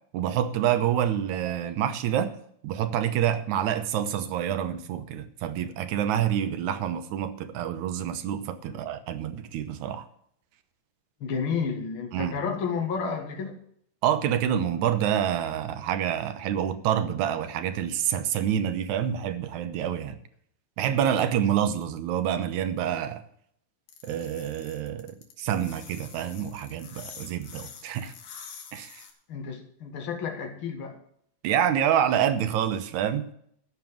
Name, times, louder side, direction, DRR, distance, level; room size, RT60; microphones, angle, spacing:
voice 1, 0.1-2.4 2.6-10.1 12.1-12.4 14.0-20.2 20.8-23.2 24.0-28.1 28.7-29.0 31.4-33.3, right 9 dB, 70° right, 10 dB, 2.1 m, -27 dB
voice 2, 11.2-13.6 29.3-31.0, left 5 dB, 45° left, 3 dB, 2.1 m, -31 dB
sound 1, 23.9-29.1, left 7 dB, 85° left, 3.2 m, -46 dB
13.5 x 5.4 x 9.1 m, 0.67 s
omnidirectional pair, 3.7 m